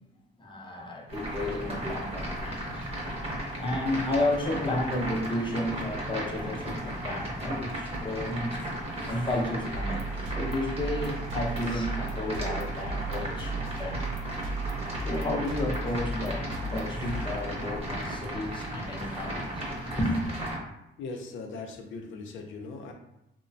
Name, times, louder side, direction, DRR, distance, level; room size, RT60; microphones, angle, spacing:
voice 1, 0.4-2.9 3.5-8.7 9.0-14.0 15.0-19.6 20.0-20.3, left 1 dB, 25° left, 0 dB, 0.5 m, -32 dB
sound 1, 1.1-20.6, right 1 dB, 30° right, 0.9 m, -35 dB
sound 2, 9.7-17.9, right 3 dB, 80° right, 0.4 m, -36 dB
voice 2, 21.0-22.9, left 3 dB, 75° left, 3 dB, 0.5 m, -39 dB
2.9 x 2.1 x 2.6 m, 0.85 s
cardioid pair, 90°, 20 cm